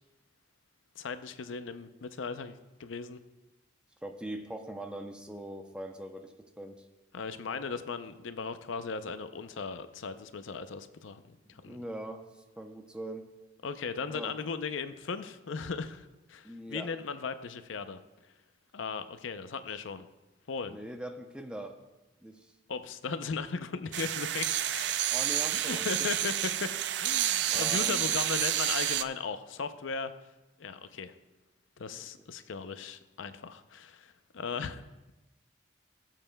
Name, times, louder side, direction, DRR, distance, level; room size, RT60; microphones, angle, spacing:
voice 1, 1.0-3.2 7.1-11.8 13.6-18.0 18.7-20.1 20.5-20.8 22.7-24.8 25.5-26.7 27.0-30.1 30.6-31.1 31.8-35.1, left 5 dB, 80° left, 11 dB, 0.5 m, -37 dB
voice 2, 4.0-6.9 11.5-13.3 14.1-14.3 16.4-16.9 20.7-21.8 22.2-22.5 25.1-25.9 27.5-28.1 31.9-32.3, right 1 dB, 5° right, 5 dB, 0.6 m, -42 dB
sound 1, 23.9-29.0, right 11 dB, 60° right, 0.4 m, -29 dB
21.5 x 7.5 x 2.2 m, 1.1 s
head